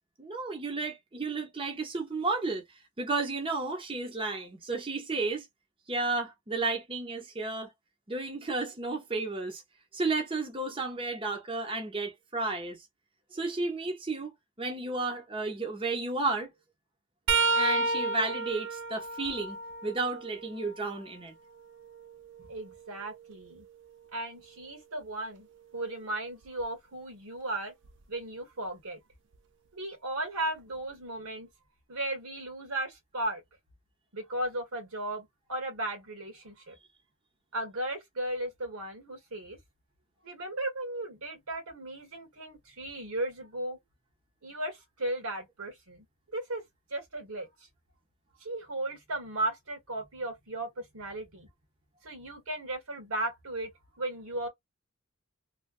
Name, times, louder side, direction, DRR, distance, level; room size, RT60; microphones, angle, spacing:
voice 1, 0.2-2.6 3.0-5.5 5.9-7.7 8.1-9.6 9.9-12.8 13.3-14.3 14.6-16.5 17.5-19.6 19.8-21.3, right 3 dB, 25° right, 0.7 m, -32 dB
sound 1, 17.3-21.0 21.6-23.5 26.4-26.6 27.8-28.0 29.3-29.4, right 3 dB, 55° right, 0.5 m, -32 dB
voice 2, 22.5-23.7 24.1-25.5 25.7-27.7 28.1-29.0 29.7-31.5 31.9-33.4 34.1-36.7 37.5-39.6 40.2-43.8 44.4-46.1 46.3-46.6 46.9-47.5 48.4-51.5 52.0-53.7 54.0-54.5, right 1 dB, 80° right, 1.5 m, -36 dB
3.2 x 2.2 x 2.3 m
head